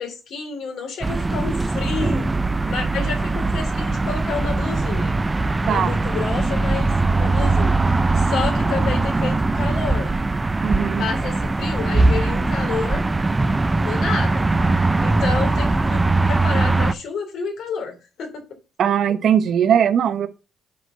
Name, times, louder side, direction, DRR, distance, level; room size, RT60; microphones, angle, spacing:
voice 1, 0.0-2.3 2.7-5.1 5.6-10.1 11.0-13.0 13.8-14.5 15.0-18.4, left 5 dB, 70° left, 3.1 m, -30 dB
sound 1, 1.0-16.9, right 2 dB, 20° right, 0.6 m, -20 dB
voice 2, 10.6-11.0 18.8-20.3, right 8 dB, 65° right, 1.2 m, -19 dB
7.9 x 4.3 x 6.7 m
cardioid pair, 90°, 0 cm